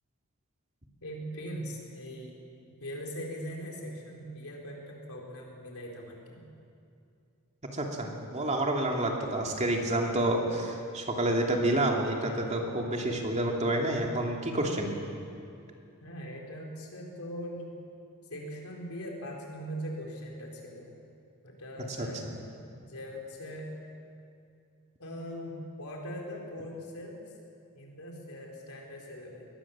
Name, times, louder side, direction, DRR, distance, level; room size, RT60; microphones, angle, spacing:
voice 1, 1.0-2.4 2.8-6.4 16.0-17.7 18.3-20.9 21.4-22.3 22.9-23.7 25.0-27.2 27.7-29.4, equal, 70° left, -1 dB, 4.5 m, -41 dB
voice 2, 7.7-14.9 22.0-22.3, right 1 dB, 30° right, 1 dB, 2.7 m, -29 dB
22.5 x 19.0 x 7.4 m, 2.5 s
head